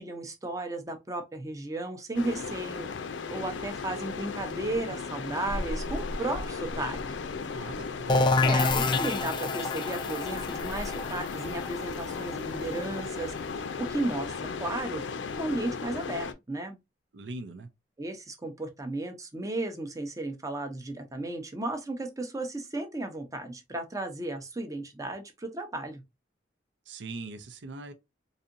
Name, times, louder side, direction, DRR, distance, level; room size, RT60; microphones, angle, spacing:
voice 1, 0.0-2.9 3.3-7.0 8.4-13.3 13.8-15.0 15.3-16.8 18.0-26.0, right 2 dB, 20° right, 0.7 m, -34 dB
sound 1, 2.1-16.3, left 4 dB, 85° left, 0.5 m, -35 dB
voice 2, 7.5-8.3 17.1-17.7 26.9-27.9, right 3 dB, 75° right, 0.6 m, -41 dB
sound 2, 8.1-13.7, left 3 dB, 25° left, 0.3 m, -28 dB
4.0 x 2.7 x 2.6 m
head